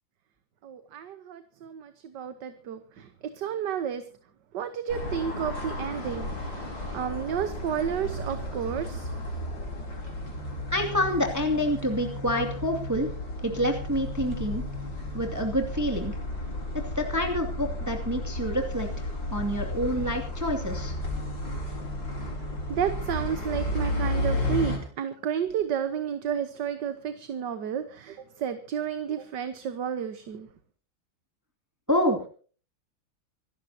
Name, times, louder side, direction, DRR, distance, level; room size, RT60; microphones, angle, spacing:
voice 1, 0.6-4.0 4.5-9.1 22.7-30.5, right 8 dB, 65° right, 10 dB, 1.6 m, -31 dB
sound 1, 4.9-24.8, left 1 dB, 70° left, 5.1 m, -33 dB
voice 2, 10.7-13.1 13.4-14.6 15.1-16.2 17.0-20.9 31.9-32.2, equal, 10° right, 3 dB, 2.3 m, -27 dB
26.5 x 13.5 x 2.8 m, 0.40 s
omnidirectional pair, 2.2 m